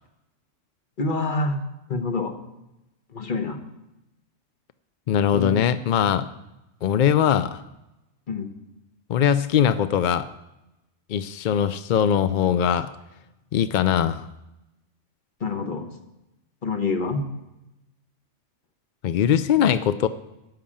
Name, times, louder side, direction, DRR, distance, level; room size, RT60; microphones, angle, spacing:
voice 1, 1.0-1.6 1.9-2.3 3.1-3.6 5.3-6.1 8.3-8.5 15.4-15.9 16.6-17.3, left 3 dB, 40° left, 6 dB, 1.2 m, -27 dB
voice 2, 5.1-6.3 6.8-7.6 9.1-10.3 11.1-12.9 13.5-14.2 19.0-20.1, left 9 dB, 70° left, 13 dB, 0.4 m, -21 dB
12.5 x 5.8 x 8.6 m, 0.94 s
omnidirectional pair, 1.3 m